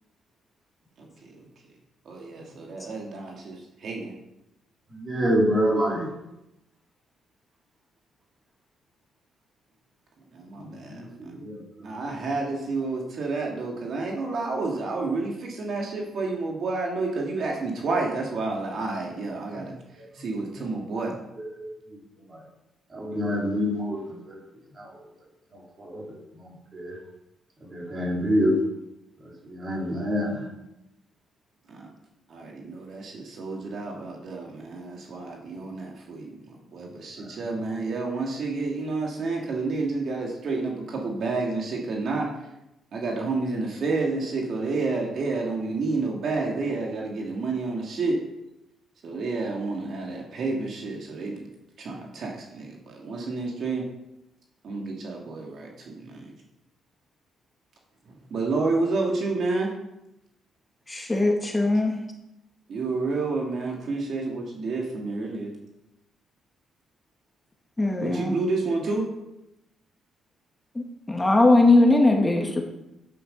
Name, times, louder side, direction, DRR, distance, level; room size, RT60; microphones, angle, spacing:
voice 1, 1.0-1.4 2.1-4.1 10.3-11.1 11.8-19.7 20.1-21.1 31.7-31.9 32.3-36.3 36.7-42.3 42.9-48.2 49.0-51.5 51.8-53.9 54.6-56.3 58.3-59.7 62.7-65.5 68.0-69.0, right 3 dB, 60° right, 0 dB, 2.4 m, -30 dB
voice 2, 4.9-6.1 10.6-11.6 20.0-20.1 21.4-21.7 22.3-22.4 22.9-24.0 24.3-24.4 24.8-25.0 25.5-27.0 27.6-28.6 29.2-30.5 37.2-37.7, equal, 35° right, -3 dB, 4.5 m, -27 dB
voice 3, 60.9-62.0 67.8-68.3 71.1-72.6, left 2 dB, 15° left, 2 dB, 1.7 m, -19 dB
10.0 x 9.6 x 5.5 m, 0.89 s
cardioid pair, 90°, 0 cm